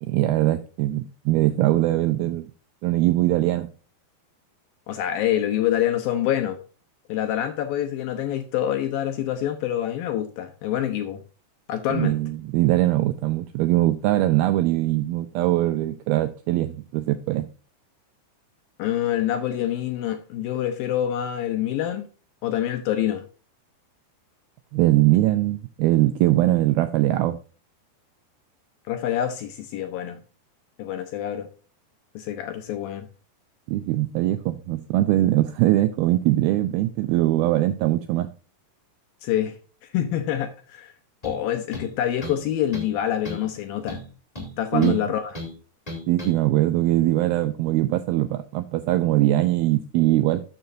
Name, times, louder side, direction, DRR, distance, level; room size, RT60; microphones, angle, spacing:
voice 1, 0.0-2.5 2.8-3.7 11.9-17.5 24.7-27.4 33.7-38.3 44.7-45.0 46.1-50.4, right 15 dB, 85° right, 2.2 m, -21 dB
voice 2, 4.9-6.6 7.1-11.2 11.7-12.2 18.8-22.1 22.4-23.2 28.9-30.2 30.8-31.5 32.2-33.1 39.2-39.6 39.9-40.9 41.2-44.0 44.6-45.3, left 11 dB, 80° left, 2.2 m, -26 dB
sound 1, 41.2-41.4 41.7-42.4 42.7-43.0 43.2-43.5 43.9-45.0 45.3-45.5 45.9-46.3, left 1 dB, 10° left, 2.7 m, -35 dB
12.5 x 7.3 x 2.6 m
omnidirectional pair, 4.9 m